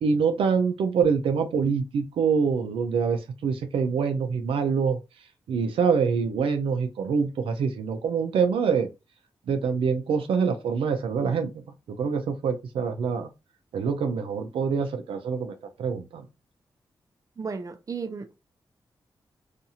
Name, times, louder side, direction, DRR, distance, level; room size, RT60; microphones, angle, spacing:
voice 1, 0.0-5.0 5.5-8.9 9.5-11.5 12.0-13.3 13.7-16.2, right 6 dB, 90° right, 0.4 m, -25 dB
voice 2, 17.4-18.4, right 5 dB, 40° right, 0.6 m, -34 dB
2.6 x 2.4 x 2.7 m
cardioid pair, 60°, 9 cm